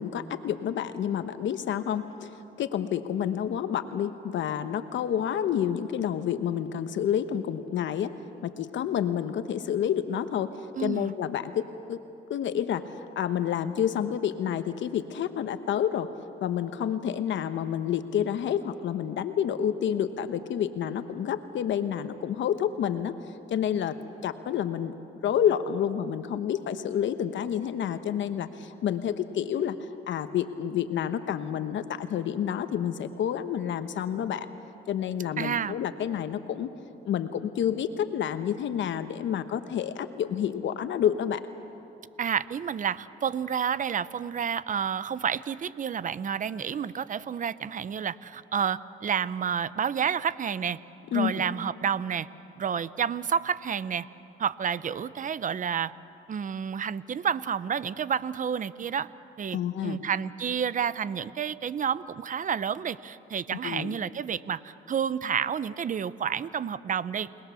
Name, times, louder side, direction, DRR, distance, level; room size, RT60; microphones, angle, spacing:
voice 1, 0.0-8.1 8.4-12.0 12.3-16.1 16.4-23.1 23.5-24.0 24.2-24.9 25.2-29.8 30.1-34.5 34.9-36.7 37.0-41.4 51.1-51.4 59.5-60.0 63.6-64.0, left 9 dB, 70° left, 10 dB, 1.1 m, -29 dB
voice 2, 10.7-11.1 35.4-35.7 42.2-50.8 51.1-52.3 52.6-54.1 54.4-55.9 56.3-59.1 59.4-67.3, right 7 dB, 40° right, 17 dB, 0.7 m, -30 dB
30.0 x 20.0 x 7.0 m, 2.9 s
cardioid pair, 90°, 20 cm